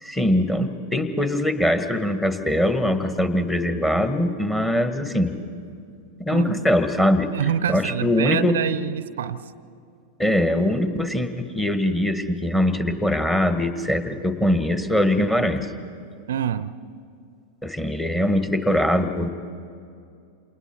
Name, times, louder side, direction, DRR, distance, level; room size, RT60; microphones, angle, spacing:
voice 1, 0.0-5.3 6.2-7.3 7.7-8.6 10.2-15.7 17.6-19.3, left 1 dB, 10° left, 8 dB, 1.5 m, -22 dB
voice 2, 6.3-6.7 7.3-9.4 16.3-16.7, right 9 dB, 60° right, 16 dB, 0.6 m, -26 dB
28.0 x 27.5 x 4.4 m, 2.4 s
figure-of-eight pair, 90°, 0 cm